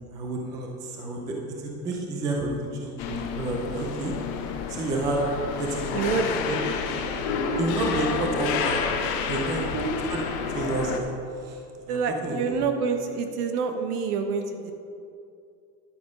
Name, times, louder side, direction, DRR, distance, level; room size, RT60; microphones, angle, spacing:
voice 1, 0.1-1.3 1.6-4.1 4.7-5.2 5.6-6.6 7.6-8.8 9.3-9.7 10.1-10.2 10.5-11.1 11.4-11.6 11.9-12.6, right 2 dB, 10° right, 0 dB, 0.3 m, -30 dB
sound 1, 3.0-11.0, left 6 dB, 45° left, 1.1 m, -29 dB
voice 2, 5.9-6.3 9.5-10.0 11.9-14.7, right 5 dB, 70° right, 6 dB, 1.4 m, -27 dB
10.5 x 7.9 x 5.3 m, 2.5 s
supercardioid pair, 155°, 47 cm